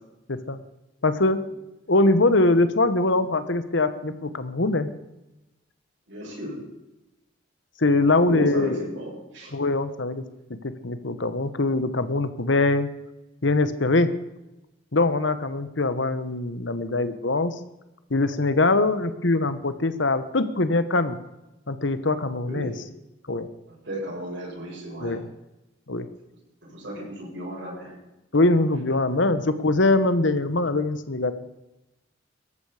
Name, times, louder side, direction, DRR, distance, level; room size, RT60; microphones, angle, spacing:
voice 1, 0.3-0.6 1.0-1.4 1.9-4.9 7.8-8.8 9.5-10.2 10.6-12.9 13.4-14.1 14.9-17.5 18.1-21.2 21.7-22.7 23.3-23.5 25.0-25.3 25.9-26.1 27.0-27.1 28.3-31.3, left 2 dB, 65° left, 12 dB, 1.2 m, -22 dB
voice 2, 6.1-6.6 8.2-9.5 22.4-22.7 23.7-25.2 26.6-28.0, right 1 dB, 65° right, -4 dB, 7.5 m, -35 dB
18.5 x 14.0 x 5.0 m, 0.95 s
head